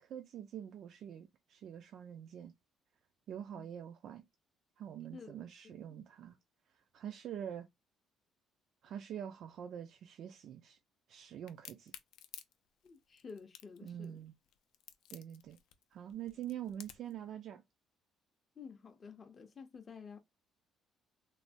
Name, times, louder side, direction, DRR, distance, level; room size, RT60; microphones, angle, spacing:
voice 1, 0.0-2.5 3.3-4.2 4.8-6.4 6.7-7.7 8.8-10.8 11.1-11.9 13.8-14.3 15.1-15.6 15.9-17.6, right 10 dB, 55° right, 0.3 m, -45 dB
voice 2, 5.1-6.1 12.8-14.2 18.6-20.2, left 5 dB, 30° left, 0.5 m, -52 dB
Crack, 11.5-17.2, left 11 dB, 85° left, 0.4 m, -53 dB
3.1 x 2.1 x 2.5 m
cardioid pair, 160°, 0 cm